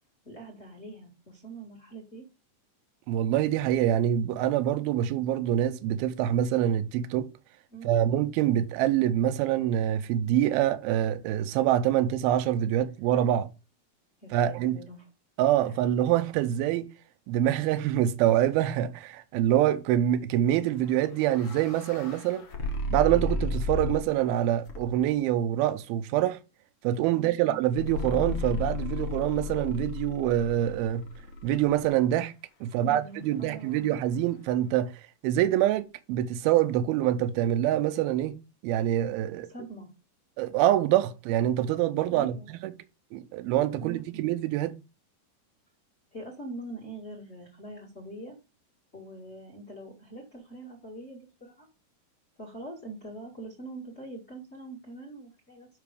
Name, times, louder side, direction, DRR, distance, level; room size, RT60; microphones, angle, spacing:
voice 1, 0.2-2.3 7.7-8.1 14.2-15.0 15.7-15.8 27.1-27.6 32.7-33.9 39.5-39.9 42.1-42.5 43.8-44.3 46.1-48.4 48.9-51.7 52.4-55.7, right 2 dB, 35° left, 1.1 m, -43 dB
voice 2, 3.1-7.3 7.8-13.5 14.3-14.8 15.4-16.9 17.3-22.5 22.9-26.4 26.8-31.0 31.4-32.3 32.6-34.9 35.2-38.4 38.6-39.5 40.4-42.7 43.1-44.7, right 12 dB, 80° right, 2.4 m, -25 dB
sound 1, 20.9-24.2 24.7-25.2 27.8-31.9, left 3 dB, 75° left, 1.2 m, -34 dB
6.0 x 5.8 x 4.9 m
omnidirectional pair, 4.7 m